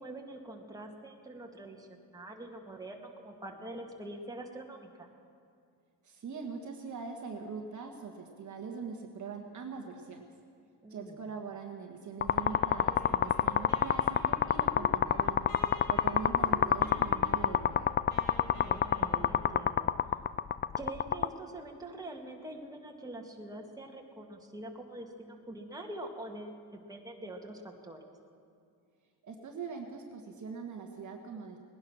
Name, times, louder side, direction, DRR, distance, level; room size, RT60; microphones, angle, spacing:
voice 1, 0.0-5.1 10.8-11.2 18.6-20.1 20.8-28.1, right 1 dB, 10° right, 1 dB, 2.1 m, -45 dB
voice 2, 6.0-10.3 10.9-15.5 15.9-17.9 29.2-31.6, right 5 dB, 45° right, 3 dB, 1.5 m, -42 dB
sound 1, 12.2-21.3, left 9 dB, 25° left, 0.4 m, -26 dB
Wind instrument woodwind instrument, 12.3-19.9, left 2 dB, 60° left, 3.9 m, -48 dB
19.5 x 10.5 x 6.2 m, 2.3 s
supercardioid pair, 75°, 42 cm